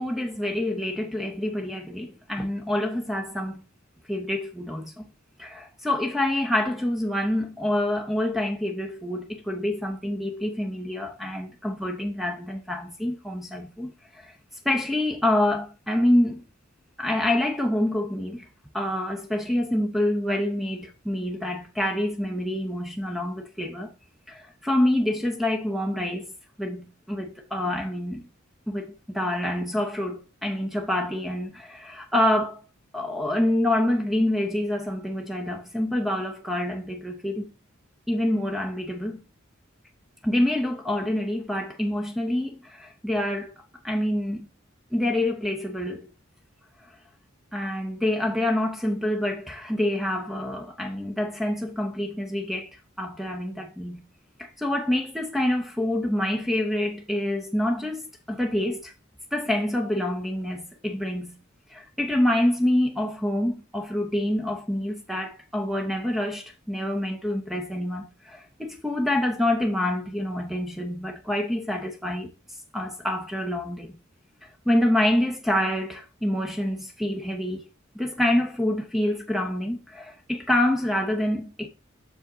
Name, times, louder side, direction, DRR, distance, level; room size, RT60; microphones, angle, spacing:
voice 1, 0.0-3.6 4.1-5.1 5.4-14.3 14.6-16.4 17.0-18.5 18.7-23.9 24.3-26.3 26.6-28.3 28.7-32.6 32.9-37.5 38.1-39.2 40.2-43.5 43.8-44.5 44.9-46.1 47.5-52.7 53.0-54.1 54.4-58.9 59.3-61.4 61.7-72.3 72.7-73.9 74.4-77.6 77.9-81.7, left 1 dB, ahead, 0.7 m, -27 dB
6.7 x 5.0 x 3.9 m
head